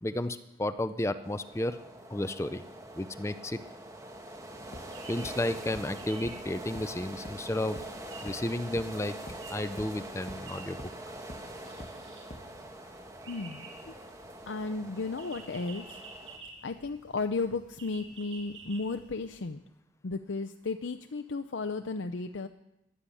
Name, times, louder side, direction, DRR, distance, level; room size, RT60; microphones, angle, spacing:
voice 1, 0.0-1.8 2.1-2.6 2.9-3.6 5.1-7.9 8.2-9.2 9.5-10.8, left 1 dB, 15° left, 12 dB, 0.5 m, -32 dB
sound 1, 1.2-16.4, right 1 dB, 15° right, 1.4 m, -44 dB
sound 2, 4.5-19.4, right 3 dB, 85° right, 6.7 m, -52 dB
sound 3, 4.7-4.8 5.2-5.3 5.7-5.8 6.2-6.3 6.7-6.8 7.2-7.3 7.8-7.9 8.3-8.4 8.8-8.9 9.3-9.4 9.8-9.9 10.3-10.4 10.8-10.9 11.3-11.4 11.8-11.9 12.3-12.4, left 1 dB, 35° left, 1.3 m, -43 dB
voice 2, 13.3-13.9 14.4-16.0 16.6-19.6 20.0-22.5, left 3 dB, 90° left, 7 dB, 0.7 m, -34 dB
13.5 x 11.5 x 8.6 m, 0.90 s
head